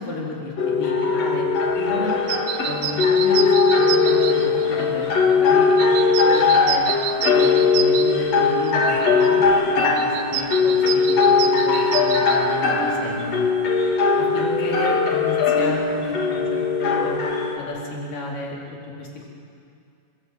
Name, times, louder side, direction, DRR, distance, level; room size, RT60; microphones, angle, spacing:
voice 1, 0.0-1.5 1.8-2.2 2.6-6.9 7.3-9.4 9.7-13.5 14.2-17.2 17.6-19.3, left 2 dB, 80° left, -3 dB, 5.8 m, -33 dB
sound 1, 0.6-17.6, left 4 dB, 55° left, 3.1 m, -19 dB
sound 2, 2.3-13.7, right 10 dB, 75° right, 2.5 m, -31 dB
29.5 x 21.5 x 8.9 m, 2.5 s
omnidirectional pair, 3.7 m